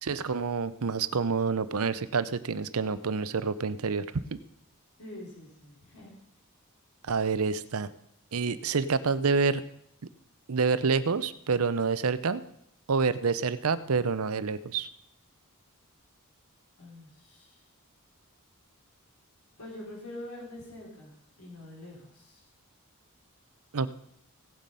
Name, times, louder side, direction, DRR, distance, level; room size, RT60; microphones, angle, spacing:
voice 1, 0.0-4.4 7.0-7.9 8.3-9.6 10.5-12.4 12.9-14.9 23.7-23.9, right 5 dB, 70° right, 15 dB, 0.7 m, -28 dB
voice 2, 5.0-6.1 16.8-17.6 19.6-21.1 21.4-22.4, left 1 dB, 75° left, -4 dB, 5.1 m, -45 dB
17.0 x 7.4 x 5.5 m, 0.73 s
head